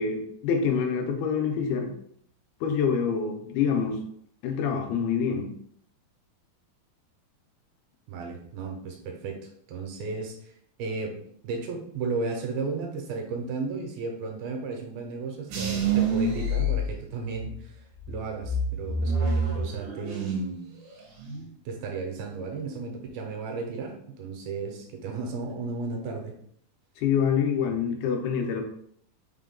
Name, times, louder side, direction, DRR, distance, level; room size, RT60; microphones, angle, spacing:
voice 1, 0.0-1.9 2.6-4.0 4.4-5.5 27.0-28.6, left 6 dB, 90° left, 3 dB, 2.6 m, -26 dB
voice 2, 8.1-9.4 9.7-10.4 10.8-11.1 11.4-17.7 18.1-20.6 21.7-26.3, right 4 dB, 85° right, 1 dB, 2.5 m, -34 dB
sound 1, 15.5-17.5 18.0-20.6 20.9-21.5, right 2 dB, 65° right, 2.7 m, -27 dB
6.0 x 3.6 x 2.2 m, 0.66 s
omnidirectional pair, 4.3 m